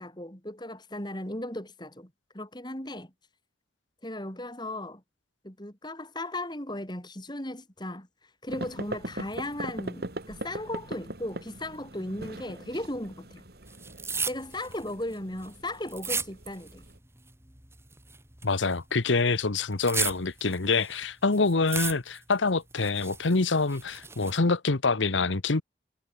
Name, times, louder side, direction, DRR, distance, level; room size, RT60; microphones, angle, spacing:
voice 1, 0.0-3.1 4.0-5.0 5.4-13.5 14.3-16.9, left 1 dB, 25° left, 4.9 m, -36 dB
sound 1, 8.5-17.0, right 1 dB, 55° right, 2.7 m, -41 dB
sound 2, 13.7-16.9 17.2-18.8 19.2-21.0 21.3-22.3 22.7-24.4, right 5 dB, 15° right, 4.7 m, -34 dB
voice 2, 18.4-25.6, left 3 dB, 90° left, 1.2 m, -26 dB
head